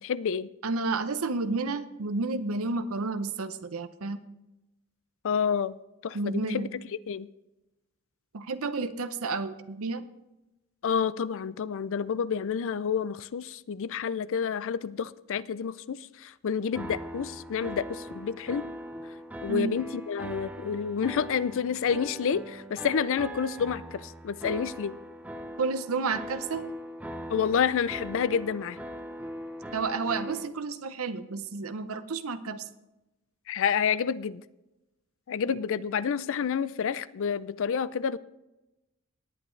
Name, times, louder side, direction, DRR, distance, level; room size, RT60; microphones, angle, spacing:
voice 1, 0.0-0.5 5.2-5.8 6.0-6.7 7.1-7.3 10.8-18.7 19.4-24.9 27.3-28.8 33.5-34.4 35.3-38.2, left 7 dB, 60° left, 18 dB, 0.4 m, -29 dB
voice 2, 0.6-4.2 6.1-6.7 8.3-10.1 19.5-19.7 25.6-26.6 29.7-32.7 35.5-35.6, right 3 dB, 70° right, 10 dB, 0.7 m, -31 dB
sound 1, 16.7-30.5, equal, 5° right, 0.8 m, -40 dB
19.0 x 8.6 x 3.2 m, 0.96 s
head